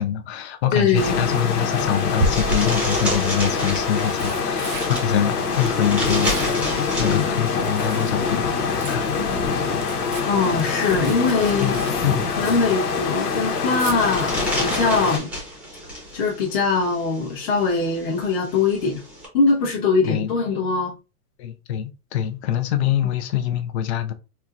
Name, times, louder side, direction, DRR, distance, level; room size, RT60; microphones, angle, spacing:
voice 1, 0.0-9.0 11.6-12.2 20.0-20.3 21.4-24.1, left 10 dB, 45° left, 0.6 m, -25 dB
voice 2, 0.7-1.1 10.2-11.8 12.4-15.3 16.1-19.0 19.3-20.9 23.0-23.1, left 4 dB, 30° left, 1.0 m, -22 dB
Tearing, 0.7-1.1 2.2-2.9 3.7-8.2 8.5-12.8 13.1-14.0 15.8-16.1 16.4-16.5, right 2 dB, 45° right, 0.8 m, -33 dB
sound 1, 0.9-15.2, left 5 dB, 90° left, 1.0 m, -25 dB
sound 2, 1.1-19.3, equal, 5° right, 0.7 m, -33 dB
4.4 x 2.2 x 2.4 m
hypercardioid pair, 145°, 46 cm